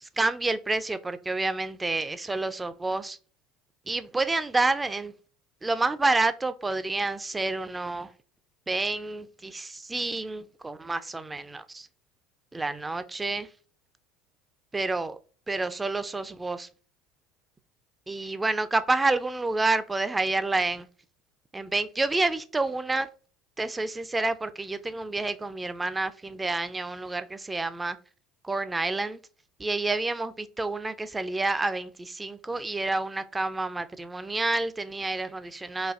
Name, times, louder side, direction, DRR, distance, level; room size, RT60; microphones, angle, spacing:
voice 1, 0.0-3.2 3.9-5.1 5.6-8.1 8.7-11.9 12.5-13.5 14.7-15.2 15.5-16.7 18.1-20.9 21.5-23.1 23.6-28.0 28.4-29.2 29.6-35.9, right 3 dB, 15° right, 0.3 m, -29 dB
4.1 x 2.5 x 2.4 m
hypercardioid pair, 85°, 0 cm